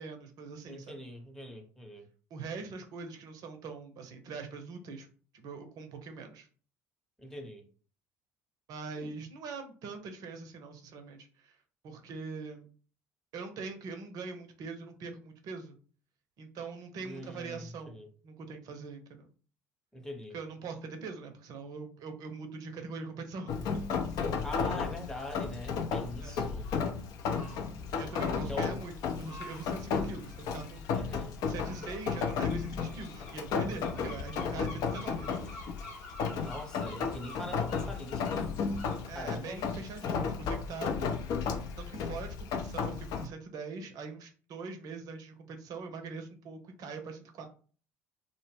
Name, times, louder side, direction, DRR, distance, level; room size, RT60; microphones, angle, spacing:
voice 1, 0.0-1.0 2.3-5.1 5.3-6.5 8.7-11.6 11.8-12.6 13.3-15.8 16.4-19.3 20.3-23.8 26.2-26.4 28.0-30.9 31.5-35.4 39.1-40.9 41.8-47.5, right 4 dB, 55° right, 0.6 m, -43 dB
voice 2, 0.7-2.0 7.2-7.6 9.0-9.1 17.0-18.1 19.9-20.4 24.1-26.7 28.5-28.7 31.0-31.4 36.4-38.4 39.1-39.6, left 1 dB, 5° left, 0.7 m, -43 dB
Rain, 23.5-43.3, left 5 dB, 55° left, 0.4 m, -34 dB
sound 1, 24.3-40.1, left 3 dB, 75° left, 0.9 m, -50 dB
2.1 x 2.0 x 3.2 m
hypercardioid pair, 60°, 8 cm